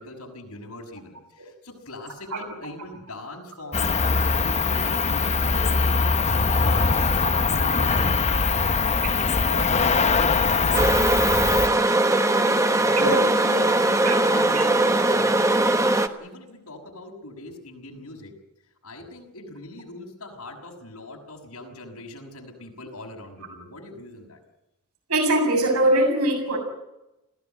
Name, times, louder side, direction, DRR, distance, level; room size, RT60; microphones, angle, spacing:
voice 1, 0.0-6.1 6.4-11.8 12.4-15.8 16.2-18.3 18.8-24.4, left 2 dB, 85° left, 1 dB, 6.1 m, -41 dB
Cricket, 3.7-11.7, left 4 dB, 30° left, 0.8 m, -22 dB
voice 2, 7.7-8.1 9.0-9.1 9.5-9.7 10.2-10.3 12.9-13.2 13.5-13.6 14.0-14.2 14.5-14.6 25.1-26.6, right 1 dB, 85° right, 3 dB, 7.0 m, -23 dB
sound 1, 10.7-16.1, right 2 dB, 15° right, 1.1 m, -20 dB
21.5 x 16.0 x 9.1 m, 0.91 s
head